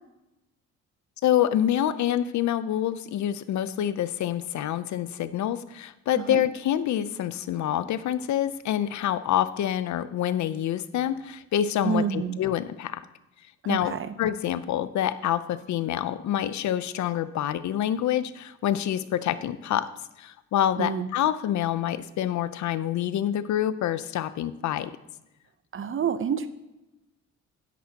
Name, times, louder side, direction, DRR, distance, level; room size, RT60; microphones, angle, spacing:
voice 1, 1.2-13.0 13.7-19.9 20.2-24.9, left 11 dB, 70° left, 14 dB, 0.7 m, -27 dB
voice 2, 11.8-12.4 13.6-14.1 20.8-21.1 25.7-26.5, right 7 dB, 45° right, 12 dB, 0.8 m, -28 dB
12.0 x 10.5 x 2.9 m, 0.97 s
cardioid pair, 90°, 30 cm